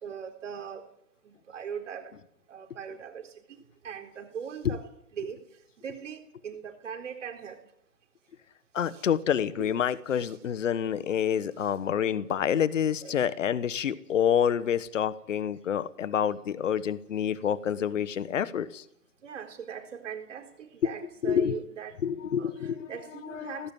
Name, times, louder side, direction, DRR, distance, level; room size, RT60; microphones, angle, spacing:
voice 1, 0.0-0.8 1.2-2.1 2.5-4.9 5.1-5.4 5.8-7.6 8.8-9.1 9.6-9.7 10.2-10.4 11.6-11.8 13.0-13.3 19.2-22.0 22.4-23.7, right 7 dB, 50° right, 6 dB, 4.1 m, -40 dB
voice 2, 8.7-18.8 20.8-20.9 21.2-21.6 22.0-22.9 23.2-23.7, left 8 dB, 55° left, 17 dB, 1.4 m, -28 dB
18.5 x 17.0 x 9.7 m, 0.77 s
figure-of-eight pair, 130°, 46 cm